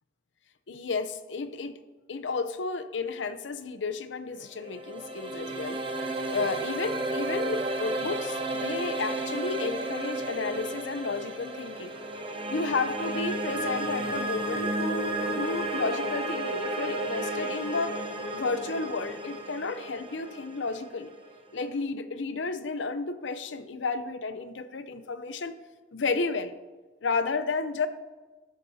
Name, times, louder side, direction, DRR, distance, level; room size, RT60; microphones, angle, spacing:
voice 1, 0.7-1.8 2.1-5.8 6.3-11.9 12.5-18.0 18.3-21.1 21.5-25.5 25.9-26.5 27.0-27.9, left 4 dB, 75° left, 11 dB, 0.7 m, -32 dB
sound 1, 4.5-21.6, right 1 dB, 25° right, 1.0 m, -33 dB
13.0 x 10.0 x 2.8 m, 1.3 s
head